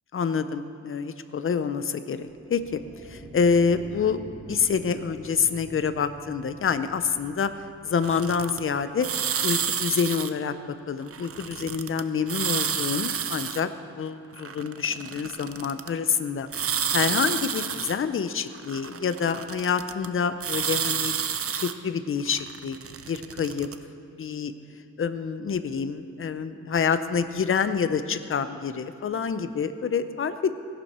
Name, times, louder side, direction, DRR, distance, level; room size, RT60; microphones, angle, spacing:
voice 1, 0.1-7.5 7.8-9.1 9.4-10.5 10.9-13.7 13.9-16.5 16.9-21.1 21.6-22.8 23.1-23.7 24.2-24.5 25.0-30.5, left 6 dB, 45° left, 11 dB, 0.6 m, -27 dB
sound 1, 2.3-9.5, right 2 dB, 20° right, 1.6 m, -48 dB
sound 2, 8.0-8.6 9.0-10.3 11.1-12.0 12.3-13.6 14.4-15.9 16.5-18.0 18.5-20.1 20.4-21.7 22.3-23.8, right 7 dB, 45° right, 0.5 m, -29 dB
16.0 x 11.5 x 4.3 m, 2.6 s
wide cardioid pair, 140°, 31 cm